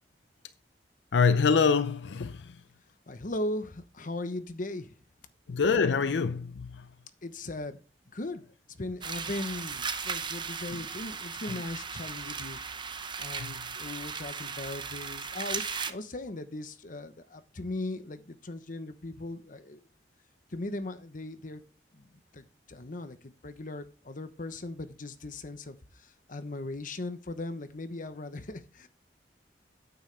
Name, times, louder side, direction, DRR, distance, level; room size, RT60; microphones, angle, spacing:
voice 1, 1.1-2.6 5.5-6.9 10.7-10.8 11.5-11.6 13.4-13.7, left 5 dB, 85° left, 0.5 m, -26 dB
voice 2, 3.1-4.9 7.2-7.8 8.1-8.4 8.8-12.6 13.2-19.8 20.5-21.6 21.9-22.0 22.3-22.4 22.7-23.2 23.4-25.8 26.3-28.9, left 2 dB, 50° left, 1.0 m, -38 dB
sound 1, 9.0-15.9, right 5 dB, 25° right, 0.7 m, -37 dB
9.2 x 9.0 x 3.4 m
head